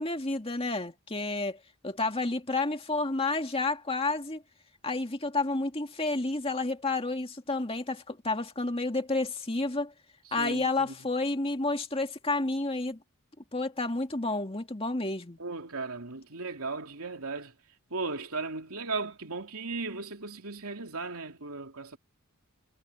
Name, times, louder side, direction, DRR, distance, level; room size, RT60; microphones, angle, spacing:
voice 1, 0.0-1.6 1.8-4.4 4.8-9.9 10.3-13.0 13.5-15.4, left 2 dB, 25° left, 2.1 m, -30 dB
voice 2, 10.3-10.7 15.4-17.5 17.9-22.0, right 3 dB, 75° right, 3.0 m, -36 dB
head